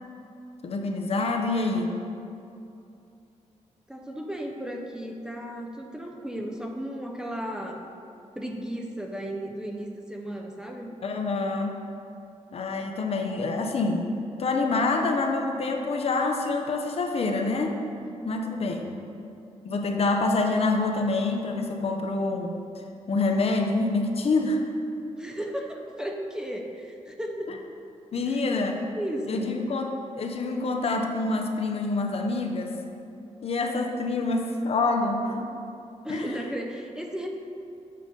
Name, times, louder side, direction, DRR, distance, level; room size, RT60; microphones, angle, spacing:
voice 1, 0.6-1.9 11.0-11.8 12.5-14.1 14.4-17.8 18.3-19.0 19.6-22.6 23.1-24.6 27.5-27.6 28.1-28.8 29.3-32.8 33.4-35.5 36.1-36.3, left 3 dB, 55° left, 3 dB, 0.6 m, -26 dB
voice 2, 3.9-7.8 8.4-10.9 18.0-18.4 25.2-27.6 28.3-28.4 29.0-29.5 36.0-37.3, equal, 5° right, 1 dB, 0.5 m, -35 dB
7.5 x 5.3 x 3.7 m, 2.6 s
wide cardioid pair, 130°, 12 cm